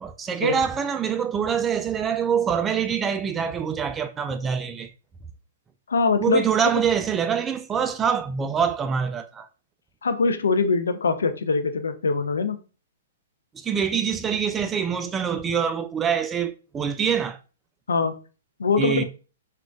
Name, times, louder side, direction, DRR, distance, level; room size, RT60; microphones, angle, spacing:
voice 1, 0.0-4.9 6.2-9.5 13.5-17.4 18.8-19.0, right 7 dB, 20° right, 0.3 m, -25 dB
voice 2, 5.9-6.5 10.0-12.6 17.9-18.2 18.6-19.0, left 4 dB, 75° left, 0.4 m, -22 dB
3.7 x 2.3 x 2.2 m
hypercardioid pair, 120°, 0 cm